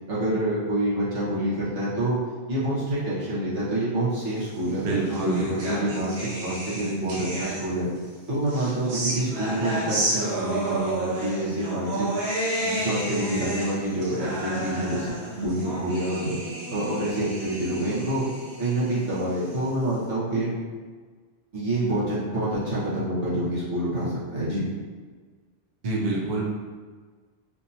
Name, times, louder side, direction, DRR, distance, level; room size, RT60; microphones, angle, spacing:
voice 1, 0.1-2.2 2.5-7.9 8.3-12.1 12.6-16.4 16.7-18.3 18.6-20.6 21.5-24.7, right 1 dB, 80° right, -9 dB, 1.7 m, -27 dB
sound 1, 4.5-8.0 8.5-19.9, right 1 dB, 60° right, 1.1 m, -32 dB
voice 2, 4.8-5.5 25.8-26.5, right 3 dB, 45° right, -5 dB, 0.7 m, -26 dB
4.5 x 2.8 x 2.7 m, 1.5 s
omnidirectional pair, 1.2 m